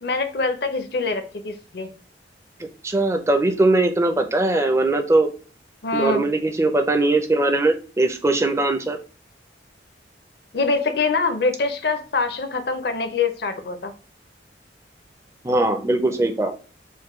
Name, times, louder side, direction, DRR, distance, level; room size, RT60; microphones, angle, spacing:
voice 1, 0.0-1.9 5.8-6.3 10.5-13.9, left 4 dB, 60° left, 7 dB, 0.6 m, -24 dB
voice 2, 2.8-5.3 5.9-9.0 15.4-16.5, right 2 dB, 15° right, 6 dB, 0.4 m, -20 dB
4.4 x 2.2 x 3.0 m, 0.39 s
head